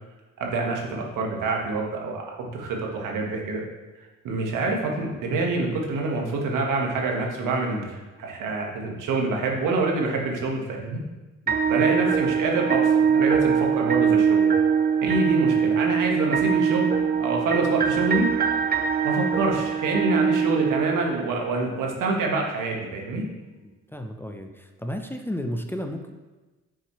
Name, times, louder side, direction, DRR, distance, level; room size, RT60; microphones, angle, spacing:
voice 1, 0.4-3.6 4.2-11.0 11.7-14.5 15.0-18.3 19.0-23.2, right 3 dB, 85° right, 0 dB, 1.6 m, -26 dB
sound 1, 11.5-21.5, right 6 dB, 30° right, 0.6 m, -22 dB
voice 2, 23.6-26.2, equal, 5° left, 5 dB, 0.7 m, -33 dB
9.2 x 6.4 x 3.2 m, 1.2 s
cardioid pair, 85°, 31 cm